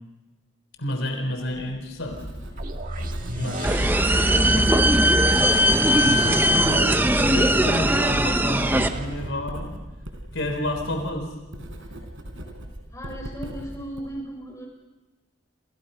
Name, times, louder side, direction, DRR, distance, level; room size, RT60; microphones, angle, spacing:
voice 1, 0.8-2.2 3.0-3.1 3.3-3.8 4.1-5.4 6.0-6.9 7.2-9.8 10.3-11.3, left 1 dB, 70° left, 4 dB, 3.9 m, -30 dB
Writing, 1.3-14.0, right 1 dB, 65° right, 4.5 m, -40 dB
sound 1, 2.6-10.5, equal, 40° right, 2.0 m, -31 dB
sound 2, 3.6-8.9, right 1 dB, 10° right, 0.8 m, -19 dB
voice 2, 12.9-14.7, right 1 dB, 15° left, 0 dB, 6.7 m, -36 dB
29.5 x 27.5 x 5.7 m, 1.1 s
head